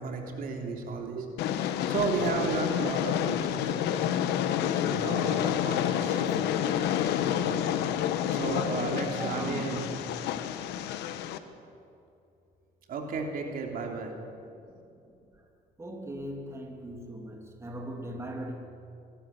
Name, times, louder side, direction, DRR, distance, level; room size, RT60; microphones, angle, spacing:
voice 1, 0.0-3.8 4.9-6.7 7.1-7.6 8.3-9.8 12.9-14.2 14.5-14.6, right 4 dB, 55° right, 2 dB, 3.2 m, -34 dB
Train, 1.4-11.4, left 10 dB, 85° left, 1.2 m, -29 dB
voice 2, 6.0-6.5 8.3-9.8 10.3-10.5 10.9-11.0 14.6-15.4 15.8-18.5, right 1 dB, 15° right, 2 dB, 2.7 m, -40 dB
25.5 x 12.5 x 9.0 m, 2.6 s
cardioid pair, 110°, 17 cm